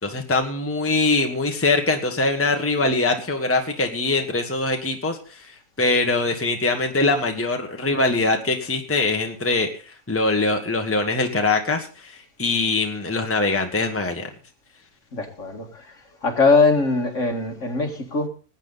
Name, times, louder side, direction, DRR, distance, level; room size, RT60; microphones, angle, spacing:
voice 1, 0.0-14.3, left 3 dB, 10° left, 4 dB, 1.5 m, -23 dB
voice 2, 15.1-16.0 16.2-18.3, left 3 dB, 55° left, 3 dB, 2.4 m, -21 dB
20.0 x 8.8 x 4.0 m, 0.37 s
omnidirectional pair, 1.6 m